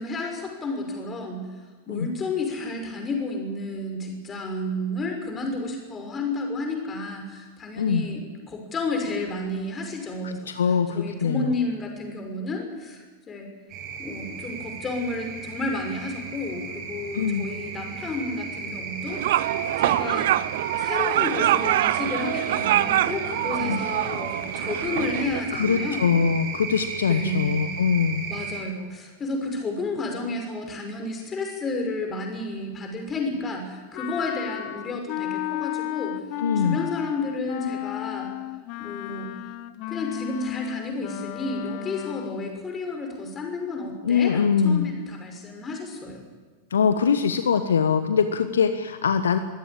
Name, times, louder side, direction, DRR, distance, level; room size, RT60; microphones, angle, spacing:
voice 1, 0.0-1.5 1.9-10.5 10.9-13.5 14.0-19.4 19.8-20.3 20.8-26.1 27.1-27.6 28.3-36.2 36.6-38.3 38.8-39.3 39.9-46.2, left 2 dB, 20° left, 3 dB, 5.7 m, -31 dB
voice 2, 7.8-8.1 10.2-11.5 17.1-17.5 23.6-23.8 25.5-28.2 36.4-36.8 44.0-44.9 46.7-49.4, left 6 dB, 70° left, 10 dB, 1.1 m, -23 dB
sound 1, 13.7-28.6, right 5 dB, 35° right, 7.8 m, -34 dB
sound 2, 19.1-25.4, right 14 dB, 55° right, 0.6 m, -25 dB
Wind instrument woodwind instrument, 33.9-42.6, left 14 dB, 45° left, 0.9 m, -33 dB
23.0 x 16.0 x 8.7 m, 1.4 s
figure-of-eight pair, 90°, 0 cm